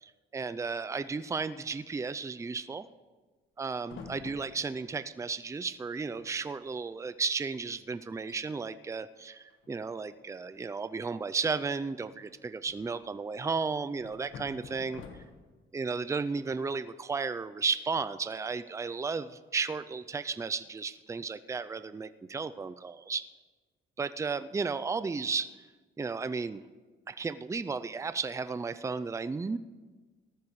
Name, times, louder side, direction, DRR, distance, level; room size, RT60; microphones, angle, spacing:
voice 1, 0.0-2.9 3.6-15.0 15.7-23.3 24.0-25.5 26.0-26.6 27.1-29.6, right 4 dB, 15° right, 13 dB, 0.4 m, -34 dB
sound 1, 3.8-5.0 5.9-6.0 6.2-6.5 6.9-7.1 7.6-7.7 8.1-8.4 9.5-10.1 12.1-13.0 14.0-15.6, left 5 dB, 80° left, 1.4 m, -49 dB
18.5 x 13.5 x 3.2 m, 1.3 s
cardioid pair, 90°, 20 cm